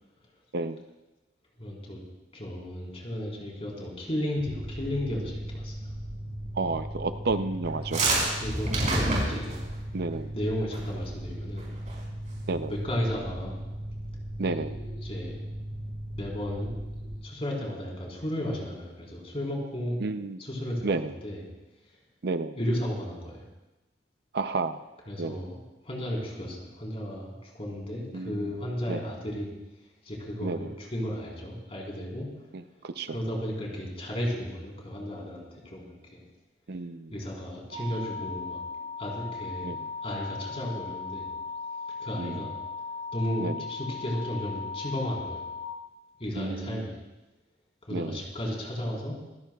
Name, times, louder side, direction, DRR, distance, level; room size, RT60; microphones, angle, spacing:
voice 1, 1.6-2.0 2.3-5.7 8.3-9.6 10.3-11.7 12.7-13.6 14.4-15.3 16.2-16.7 17.2-20.0 20.4-21.4 22.6-23.5 25.1-25.6 25.8-29.5 30.0-32.3 33.1-36.2 37.1-39.7 40.0-41.3 42.0-42.6 43.1-45.5 46.2-46.9 47.8-49.2, equal, 35° left, -3 dB, 4.3 m, -34 dB
Mechanical fan, 4.4-17.1, right 1 dB, 55° left, 6.8 m, -38 dB
voice 2, 6.6-8.0 9.9-10.3 12.5-12.7 14.4-14.8 20.0-20.4 20.8-21.1 22.2-22.5 24.3-24.8 25.2-25.4 28.1-28.5 28.9-29.0 30.4-30.7 32.5-33.2 36.7-37.1 39.6-39.8 42.2-42.4 43.4-43.5 46.4-46.8 47.9-48.2, right 3 dB, 60° right, 10 dB, 0.6 m, -31 dB
sound 1, 7.7-9.7 10.7-11.0 11.3-11.4 11.6-12.0, right 2 dB, 45° right, 5.5 m, -26 dB
sound 2, 37.7-45.6, left 4 dB, 75° left, 5.4 m, -37 dB
26.0 x 15.5 x 2.4 m, 1.0 s
head